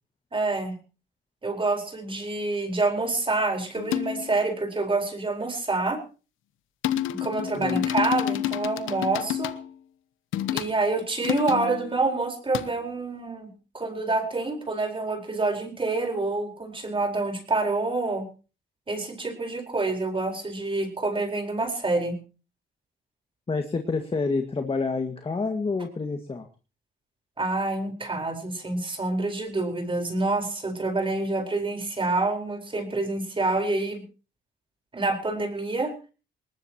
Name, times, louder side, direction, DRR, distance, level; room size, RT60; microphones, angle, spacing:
voice 1, 0.3-0.7 1.4-6.0 7.2-9.5 10.5-18.3 18.9-22.1 27.4-34.0 34.9-35.9, right 3 dB, 25° right, 4 dB, 4.5 m, -27 dB
sound 1, 3.7-4.4 6.8-9.7 10.3-10.7 11.2-12.0 12.5-12.7, left 12 dB, 90° left, 1.0 m, -29 dB
voice 2, 23.5-26.5, left 4 dB, 30° left, 5 dB, 1.9 m, -28 dB
20.0 x 20.0 x 3.0 m, 0.36 s
cardioid pair, 90°, 20 cm